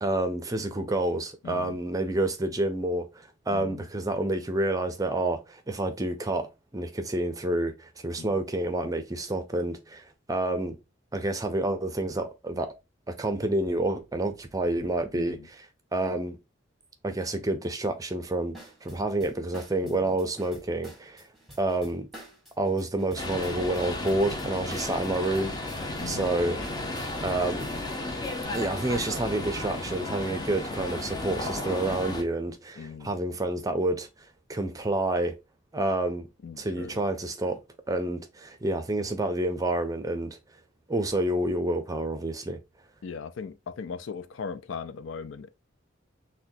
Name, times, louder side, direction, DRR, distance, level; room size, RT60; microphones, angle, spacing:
voice 1, 0.0-10.8 11.1-12.7 13.1-15.4 15.9-16.4 17.0-21.3 21.6-22.1 22.6-25.5 26.0-26.6 27.2-27.7 28.5-34.1 34.5-35.3 35.7-36.3 36.6-37.6 37.9-40.4 40.9-42.6, right 1 dB, 20° right, 0.5 m, -29 dB
voice 2, 1.4-1.8 3.5-3.9 8.2-8.3 15.1-15.5 19.8-20.2 26.0-26.4 32.8-33.1 36.4-37.0 43.0-45.5, left 5 dB, 80° left, 0.4 m, -39 dB
sound 1, 18.5-28.7, right 1 dB, ahead, 1.3 m, -49 dB
sound 2, 23.2-32.2, left 2 dB, 20° left, 0.7 m, -34 dB
6.0 x 2.2 x 2.6 m
head